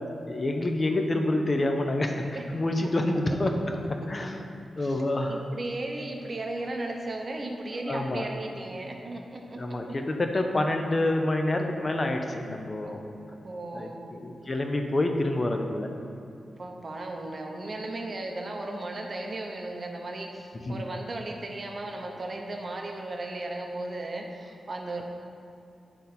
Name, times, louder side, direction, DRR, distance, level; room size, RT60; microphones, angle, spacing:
voice 1, 0.3-2.2 2.5-3.5 4.1-4.4 4.8-5.4 7.9-8.3 9.5-13.0 13.7-15.9 20.6-20.8, left 1 dB, 30° left, 4 dB, 0.6 m, -27 dB
voice 2, 4.8-9.8 12.8-12.9 13.3-14.1 16.6-25.0, right 2 dB, 35° right, 2 dB, 0.8 m, -36 dB
10.0 x 4.0 x 4.2 m, 2.5 s
wide cardioid pair, 130°, 0 cm